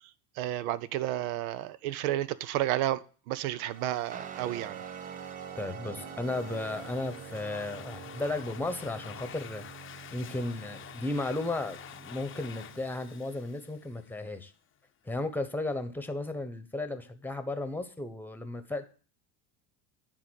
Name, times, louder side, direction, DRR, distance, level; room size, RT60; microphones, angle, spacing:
voice 1, 0.4-4.8, right 13 dB, 85° right, 0.7 m, -31 dB
sound 1, 3.6-8.9, right 7 dB, 55° right, 1.1 m, -51 dB
Guitar, 4.1-12.9, right 8 dB, 20° right, 0.4 m, -46 dB
voice 2, 5.6-9.6 10.1-14.5 15.0-18.8, left 2 dB, 5° left, 1.0 m, -34 dB
Domestic sounds home sounds, 6.0-14.4, left 9 dB, 30° left, 0.7 m, -48 dB
10.0 x 3.8 x 6.3 m
supercardioid pair, 100°, 42 cm